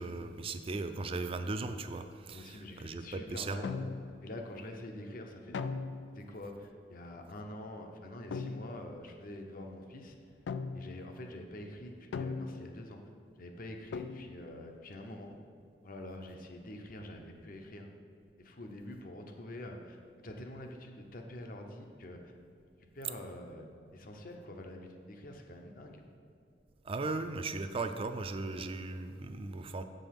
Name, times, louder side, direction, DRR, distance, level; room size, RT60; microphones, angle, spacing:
voice 1, 0.0-3.7 26.8-29.8, right 3 dB, 35° right, 8 dB, 0.4 m, -37 dB
voice 2, 2.3-3.8 4.2-5.6 6.1-10.2 10.7-13.0 13.4-15.4 15.8-17.9 18.4-22.3 22.9-23.7 23.9-26.0, left 1 dB, 55° left, 3 dB, 0.8 m, -46 dB
sound 1, 3.6-4.3 5.5-6.2 8.3-8.9 10.5-11.1 12.1-12.9 13.9-14.5, left 4 dB, 85° left, 0.4 m, -38 dB
7.9 x 5.3 x 5.8 m, 2.4 s
head